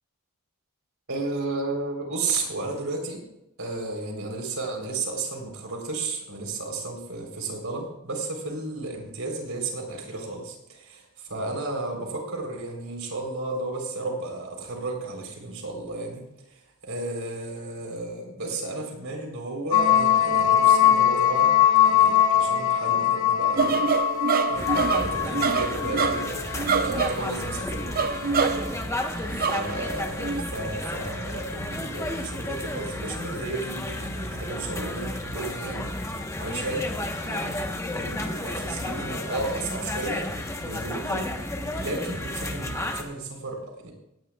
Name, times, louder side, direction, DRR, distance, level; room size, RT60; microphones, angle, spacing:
voice 1, 1.1-3.2 3.6-21.6 21.8-23.9 24.5-28.1 29.4-37.0 37.2-37.7 37.9-40.3 40.6-43.9, right 2 dB, 80° right, 2 dB, 3.8 m, -33 dB
sound 1, 19.7-27.8, left 10 dB, 70° left, 1.4 m, -22 dB
sound 2, 23.6-28.8 29.3-29.8 30.2-30.4, right 5 dB, 45° right, 0.5 m, -26 dB
sound 3, 24.6-43.0, left 1 dB, 15° left, 1.1 m, -32 dB
18.0 x 15.5 x 2.4 m, 0.86 s
head